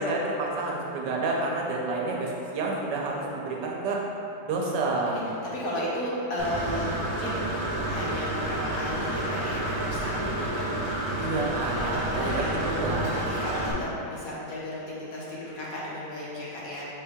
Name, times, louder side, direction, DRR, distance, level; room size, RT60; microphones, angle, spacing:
voice 1, 0.0-4.0 4.4-5.3 11.2-13.2 13.7-13.9, right 2 dB, 85° right, -2 dB, 1.3 m, -29 dB
voice 2, 5.4-7.6 7.9-11.0 11.7-16.8, left 1 dB, 60° left, -7 dB, 1.2 m, -34 dB
Engine / Mechanisms, 6.4-13.7, right 1 dB, 65° right, 1.1 m, -30 dB
5.2 x 2.8 x 3.5 m, 2.7 s
omnidirectional pair, 1.9 m